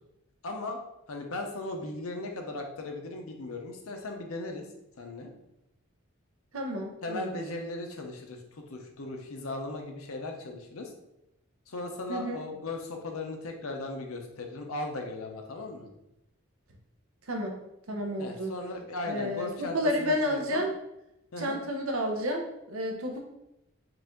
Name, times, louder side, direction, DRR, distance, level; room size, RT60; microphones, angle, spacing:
voice 1, 0.4-0.8 1.1-4.7 5.0-5.3 7.0-8.4 8.7-10.9 11.7-15.9 18.2-20.6 21.3-21.6, left 2 dB, 90° left, 3 dB, 0.7 m, -37 dB
voice 2, 6.5-7.4 12.1-12.4 17.3-17.5 17.9-18.5 19.1-20.7 21.4-23.2, equal, 85° right, 2 dB, 0.8 m, -31 dB
4.7 x 2.6 x 3.7 m, 0.87 s
head